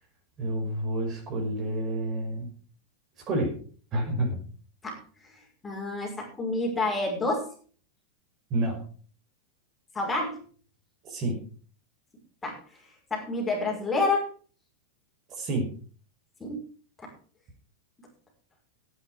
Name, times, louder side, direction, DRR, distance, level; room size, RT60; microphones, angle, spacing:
voice 1, 0.4-2.5 3.3-3.5 3.9-4.4 8.5-8.8 11.0-11.4 15.4-15.7, right 1 dB, 30° right, 2 dB, 5.5 m, -29 dB
voice 2, 5.6-7.5 9.9-10.4 12.4-12.6 13.1-14.3 16.4-16.6, left 2 dB, 15° left, -1 dB, 5.5 m, -28 dB
15.0 x 9.6 x 4.9 m, 0.42 s
figure-of-eight pair, 90°, 0 cm